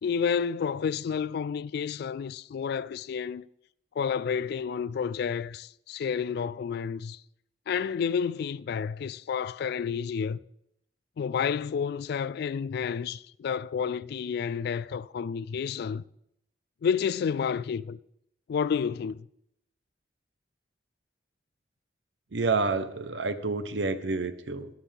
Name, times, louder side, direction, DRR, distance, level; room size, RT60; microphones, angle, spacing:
voice 1, 0.0-3.5 4.0-7.2 7.7-10.4 11.2-16.0 16.8-18.0 18.5-19.3, left 6 dB, 60° left, 0.3 m, -30 dB
voice 2, 22.3-24.7, right 3 dB, 80° right, 0.8 m, -29 dB
12.5 x 11.5 x 3.4 m
head